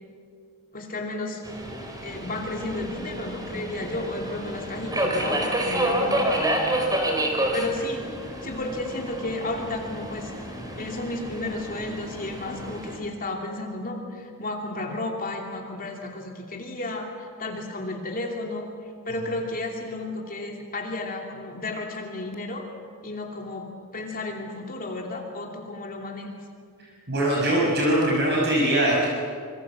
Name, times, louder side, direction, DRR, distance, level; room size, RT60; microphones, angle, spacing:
voice 1, 0.7-1.4 2.0-6.4 7.5-8.1 8.4-10.3 10.7-18.7 19.1-22.7 23.0-26.4, left 2 dB, 40° left, 1 dB, 2.8 m, -33 dB
Subway metro underground, 1.4-13.0, right 1 dB, 15° right, 3.8 m, -29 dB
voice 2, 27.1-29.1, right 1 dB, 50° right, -3 dB, 5.8 m, -21 dB
26.0 x 24.0 x 7.4 m, 2.1 s
head